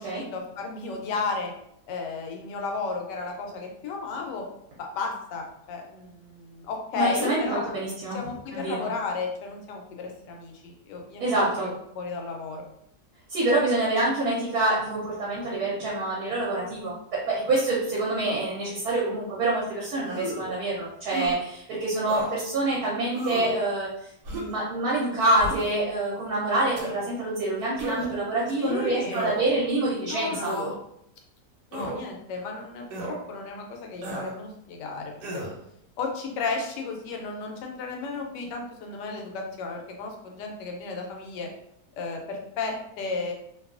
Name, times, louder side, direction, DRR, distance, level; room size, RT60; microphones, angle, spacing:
voice 1, 0.0-1.5 1.9-4.5 4.8-7.7 8.1-12.6 28.6-29.3 30.1-30.7 31.7-35.4 36.0-41.5 42.0-43.3, left 4 dB, 90° left, 2 dB, 1.2 m, -33 dB
voice 2, 7.0-8.2 8.5-8.9 11.2-11.7 13.3-16.9 17.3-23.9 24.3-30.5, right 2 dB, 70° right, -5 dB, 1.2 m, -26 dB
sound 1, 20.0-20.5 21.1-21.4 22.1-22.3 23.1-23.6 24.2-24.6 25.4-25.8 26.7-26.9 27.8-28.2 29.1-29.6 30.4-30.8 31.7-32.0 32.9-33.2 34.0-34.3 35.2-35.5, right 2 dB, 85° right, 1.3 m, -33 dB
2.9 x 2.3 x 2.4 m, 0.73 s
omnidirectional pair, 1.8 m